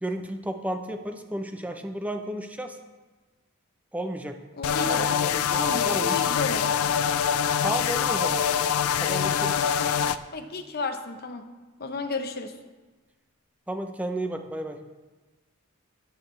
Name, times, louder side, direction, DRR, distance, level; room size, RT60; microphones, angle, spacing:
voice 1, 0.0-2.8 3.9-4.4 4.9-6.3 7.6-8.5 9.0-9.6 13.7-14.8, right 1 dB, 5° right, 5 dB, 0.6 m, -33 dB
sound 1, 4.6-10.2, left 8 dB, 90° left, 0.4 m, -24 dB
voice 2, 4.6-5.1 5.5-6.7 10.3-11.4 11.8-12.5, left 3 dB, 45° left, 7 dB, 0.8 m, -32 dB
11.5 x 8.7 x 3.2 m, 1.2 s
head